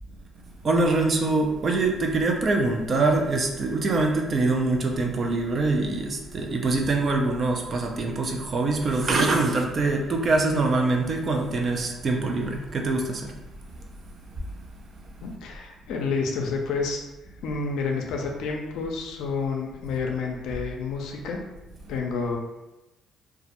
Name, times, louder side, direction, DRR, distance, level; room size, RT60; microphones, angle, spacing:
voice 1, 0.6-13.3, right 3 dB, 45° right, 2 dB, 0.4 m, -24 dB
voice 2, 15.2-17.0 17.4-21.4 21.9-22.4, left 4 dB, 80° left, 1 dB, 0.4 m, -29 dB
2.2 x 2.0 x 2.9 m, 1.0 s
supercardioid pair, 75°, 0 cm